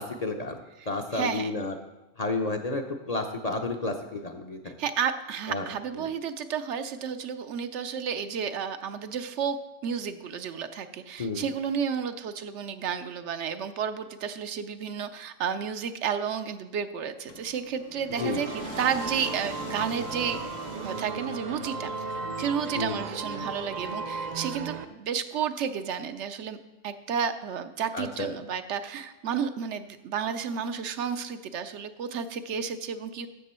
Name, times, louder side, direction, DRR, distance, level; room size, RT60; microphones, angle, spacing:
voice 1, 0.0-1.7 2.2-4.7 5.5-5.7 11.2-11.5 18.2-18.4 22.7-23.0 27.9-28.3, left 2 dB, 40° left, 4 dB, 0.6 m, -31 dB
voice 2, 0.8-1.5 4.8-9.6 9.8-20.4 20.8-21.9 22.4-26.6 26.8-33.3, right 7 dB, 70° right, 9 dB, 0.9 m, -32 dB
sound 1, 17.3-21.7, left 5 dB, 85° left, 1.3 m, -43 dB
sound 2, 18.2-24.9, right 4 dB, 45° right, 0.6 m, -35 dB
12.0 x 7.5 x 4.3 m, 1.1 s
omnidirectional pair, 1.3 m